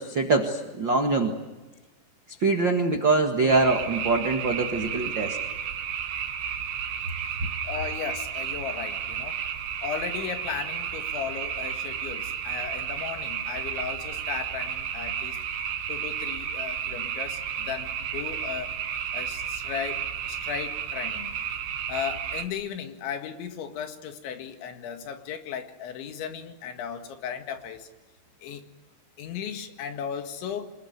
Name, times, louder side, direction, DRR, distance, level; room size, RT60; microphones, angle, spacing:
voice 1, 0.0-1.3 2.4-5.4, right 3 dB, 80° right, 4 dB, 1.0 m, -23 dB
sound 1, 3.5-22.5, right 8 dB, 65° right, 3.0 m, -32 dB
voice 2, 7.6-9.4 9.8-15.4 15.9-18.7 19.1-21.4 21.9-27.9 28.4-28.6 29.2-30.7, left 8 dB, 75° left, 6 dB, 4.2 m, -36 dB
26.5 x 21.0 x 9.5 m, 1.1 s
omnidirectional pair, 5.4 m